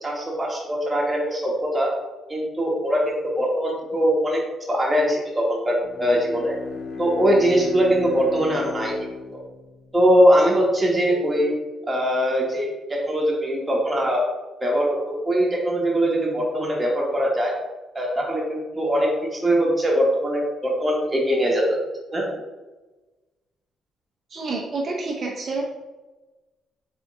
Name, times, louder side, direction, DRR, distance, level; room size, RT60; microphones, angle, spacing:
voice 1, 0.0-1.9 2.3-4.4 4.7-6.5 7.0-8.9 9.9-11.5 11.9-14.2 14.6-17.5 17.9-21.8 22.1-22.2, equal, 20° right, -3 dB, 1.3 m, -21 dB
Bowed string instrument, 5.7-10.1, left 4 dB, 45° left, 0.7 m, -34 dB
voice 2, 24.3-25.6, right 3 dB, 50° right, -1 dB, 0.6 m, -28 dB
3.6 x 3.5 x 3.5 m, 1.2 s
cardioid pair, 90°, 0 cm